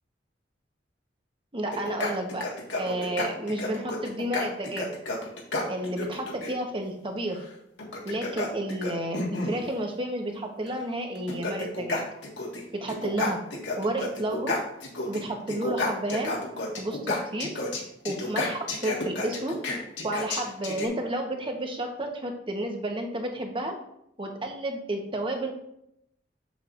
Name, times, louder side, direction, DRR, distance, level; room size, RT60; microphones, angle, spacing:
voice 1, 1.5-2.4 2.8-4.9 5.7-7.5 8.0-12.0 12.7-13.4 13.8-14.5 15.1-16.3 16.8-17.5 18.0-19.5 20.0-23.7 24.2-25.5, right 1 dB, 30° right, 3 dB, 1.0 m, -31 dB
sound 1, 1.7-6.5 7.8-9.6 10.7-10.8 11.1-12.6 12.9-15.2 15.5-20.9, left 2 dB, 80° left, 1.7 m, -31 dB
7.6 x 7.1 x 2.5 m, 0.77 s
head